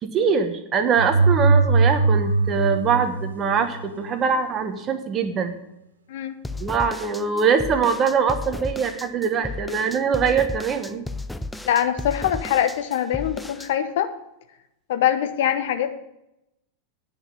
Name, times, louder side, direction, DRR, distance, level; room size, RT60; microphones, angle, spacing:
voice 1, 0.0-5.6 6.6-11.0, right 6 dB, 25° right, 7 dB, 1.3 m, -23 dB
sound 1, 1.0-3.9, right 3 dB, 70° right, 0.5 m, -20 dB
sound 2, 6.4-13.7, left 2 dB, 5° left, 0.5 m, -34 dB
voice 2, 11.7-14.1 14.9-15.9, left 10 dB, 55° left, 8 dB, 0.9 m, -23 dB
10.0 x 5.9 x 8.6 m, 0.85 s
figure-of-eight pair, 90°, 0 cm